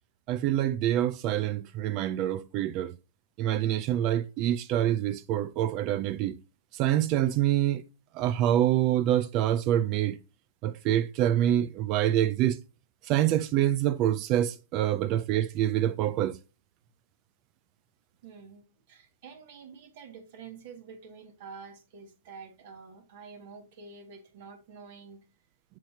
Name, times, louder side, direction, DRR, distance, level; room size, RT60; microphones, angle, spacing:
voice 1, 0.3-3.0 3.4-6.4 6.7-7.8 8.1-10.2 10.6-12.6 13.0-16.4, right 12 dB, 35° right, 0.3 m, -26 dB
voice 2, 18.2-25.2, right 5 dB, 50° right, 1.9 m, -48 dB
7.4 x 5.7 x 2.8 m
hypercardioid pair, 140°, 0 cm